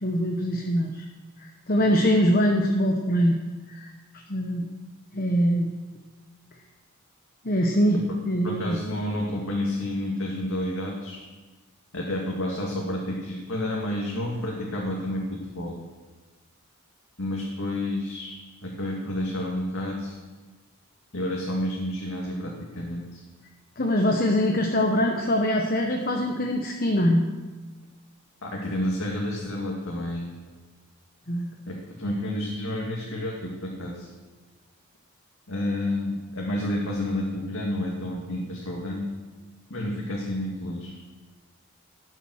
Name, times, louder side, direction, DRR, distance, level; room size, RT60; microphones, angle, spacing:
voice 1, 0.0-1.0 1.7-3.3 3.7-3.9 4.3-4.7 5.1-5.7 7.4-8.0 8.2-8.8 23.8-27.2 31.3-31.5, equal, 40° left, 2 dB, 1.1 m, -23 dB
voice 2, 8.4-11.2 11.9-15.8 17.2-18.3 18.6-20.1 21.1-23.2 28.4-30.4 31.7-34.1 35.5-39.1 39.7-41.0, left 1 dB, 70° left, -2 dB, 2.1 m, -30 dB
14.0 x 9.1 x 6.4 m, 1.3 s
head